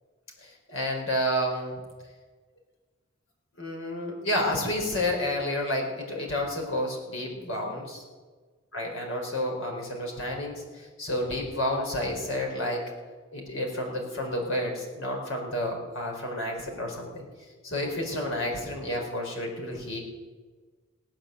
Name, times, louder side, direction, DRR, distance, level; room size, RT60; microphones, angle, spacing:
voice 1, 0.4-1.7 3.6-8.0 8.7-12.8 13.3-17.3 17.6-20.0, left 1 dB, 75° left, 1 dB, 4.5 m, -30 dB
18.0 x 8.9 x 7.8 m, 1.4 s
head